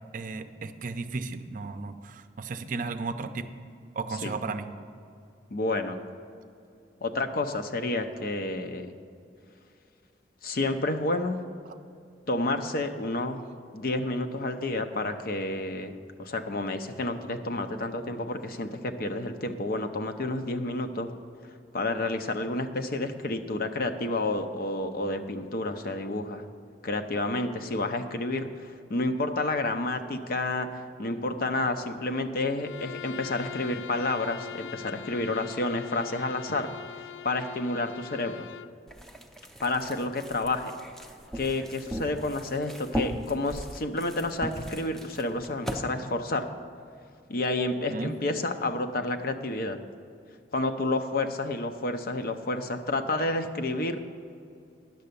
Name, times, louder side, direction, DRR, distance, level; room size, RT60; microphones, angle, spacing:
voice 1, 0.1-3.5 4.0-4.7 47.9-48.1, right 3 dB, 50° right, 9 dB, 0.5 m, -34 dB
voice 2, 5.5-6.0 7.0-8.9 10.4-11.4 12.3-13.4 13.7-15.9 16.2-21.1 21.7-26.4 26.8-36.7 37.2-38.5 39.6-40.7 41.3-46.5 47.3-49.8 50.5-54.0, left 2 dB, 55° left, 7 dB, 0.7 m, -30 dB
Bowed string instrument, 32.6-38.8, left 11 dB, 85° left, 0.4 m, -42 dB
sound 1, 38.9-45.8, equal, 5° left, 0.6 m, -38 dB
10.5 x 6.7 x 6.8 m, 2.4 s
head